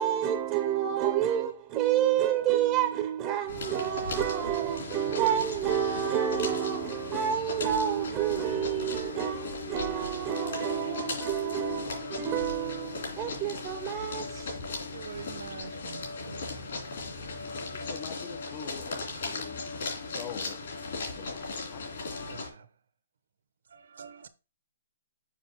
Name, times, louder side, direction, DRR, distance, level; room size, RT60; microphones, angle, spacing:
voice 1, 0.0-14.7, right 10 dB, 20° right, 0.6 m, -29 dB
sound 1, 3.5-22.5, left 3 dB, 65° left, 3.0 m, -37 dB
voice 2, 14.9-16.4 22.3-22.6 23.8-24.3, right 6 dB, 70° right, 0.9 m, -45 dB
voice 3, 17.7-19.6 20.1-20.6 20.9-21.8, left 10 dB, 25° left, 0.4 m, -44 dB
7.2 x 5.2 x 2.9 m
hypercardioid pair, 155°, 0 cm